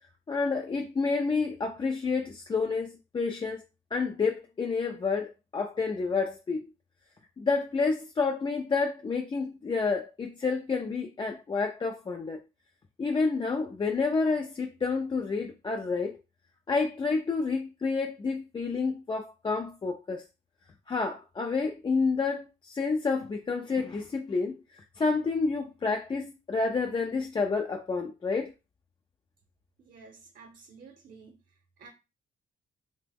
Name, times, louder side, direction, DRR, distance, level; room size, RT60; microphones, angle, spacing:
voice 1, 0.3-2.9 3.1-3.6 3.9-6.6 7.4-12.4 13.0-16.2 16.7-20.2 20.9-28.5, left 4 dB, 25° left, 0.4 m, -29 dB
voice 2, 29.8-31.4 31.8-31.9, right 5 dB, 50° right, 0.8 m, -51 dB
2.9 x 2.1 x 3.4 m
cardioid pair, 90°, 20 cm